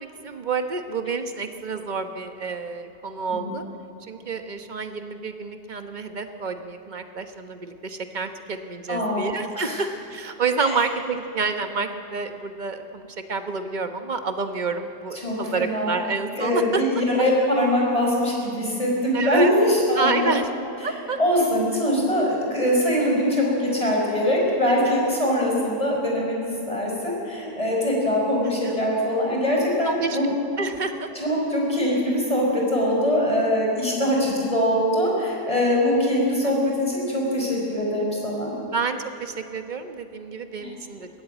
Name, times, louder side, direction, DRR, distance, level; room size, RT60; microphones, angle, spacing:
voice 1, 0.0-3.6 4.0-16.8 19.1-19.5 20.0-20.5 20.8-21.2 24.8-24.9 28.6-28.7 29.8-31.1 35.6-35.7 38.7-41.1, right 4 dB, 35° right, 7 dB, 1.0 m, -29 dB
voice 2, 8.9-9.2 9.5-9.8 10.6-10.8 15.2-15.9 16.3-20.3 21.2-30.3 31.1-38.5 40.6-40.7, left 1 dB, 20° left, -2 dB, 5.1 m, -22 dB
20.5 x 16.0 x 9.0 m, 2.7 s
omnidirectional pair, 1.7 m